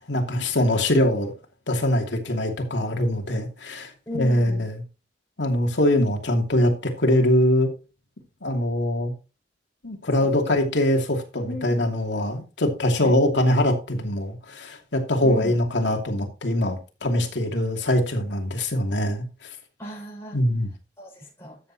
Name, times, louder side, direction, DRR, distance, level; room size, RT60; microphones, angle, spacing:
voice 1, 0.1-1.3 1.7-4.8 5.4-7.7 8.4-9.1 9.8-19.2 20.3-20.7, left 1 dB, 85° left, 2.7 m, -23 dB
voice 2, 4.1-4.6 10.2-10.6 11.5-11.8 12.9-13.1 15.2-15.6 19.8-20.4 21.0-21.6, equal, 15° left, 5.8 m, -35 dB
13.0 x 8.3 x 2.9 m
head